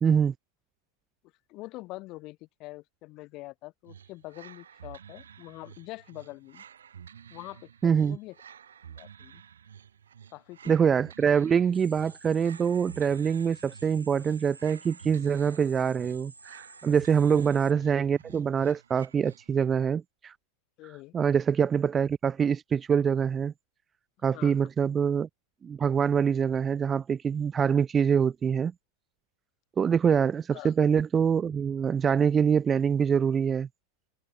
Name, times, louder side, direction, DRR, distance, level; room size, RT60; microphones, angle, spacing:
voice 1, 0.0-0.3 7.8-8.2 10.7-20.3 21.1-23.5 24.2-25.3 25.6-28.7 29.8-33.7, right 7 dB, 20° right, 0.3 m, -25 dB
voice 2, 1.5-6.6 7.3-8.4 9.0-9.4 10.3-10.8 17.2-17.4 20.8-21.1 24.3-24.6 30.5-30.7, left 20 dB, 40° left, 2.7 m, -44 dB
sound 1, 3.9-19.8, right 8 dB, 65° right, 2.0 m, -51 dB
sound 2, 11.7-17.7, right 3 dB, 80° right, 2.2 m, -51 dB
figure-of-eight pair, 90°, 0 cm